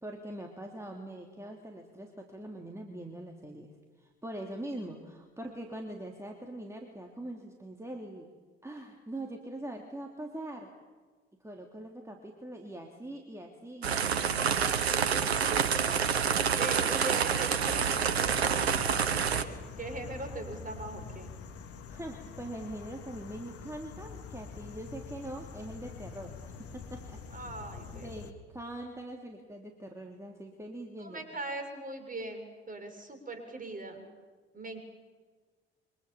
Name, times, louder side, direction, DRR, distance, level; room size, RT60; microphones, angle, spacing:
voice 1, 0.0-3.7 4.0-8.3 8.6-10.7 11.4-14.3 21.9-27.5 27.9-31.3, right 1 dB, 10° right, 1 dB, 3.4 m, -43 dB
sound 1, 13.8-19.4, right 7 dB, 85° right, 1.0 m, -28 dB
voice 2, 15.5-16.1 16.4-19.0 19.3-19.4 19.8-21.3 27.3-28.1 31.0-34.1 34.5-34.8, right 2 dB, 25° right, 7 dB, 6.7 m, -40 dB
sound 2, 17.7-28.3, left 5 dB, 50° left, 2.3 m, -45 dB
28.5 x 25.0 x 7.3 m, 1.4 s
figure-of-eight pair, 50°, 31 cm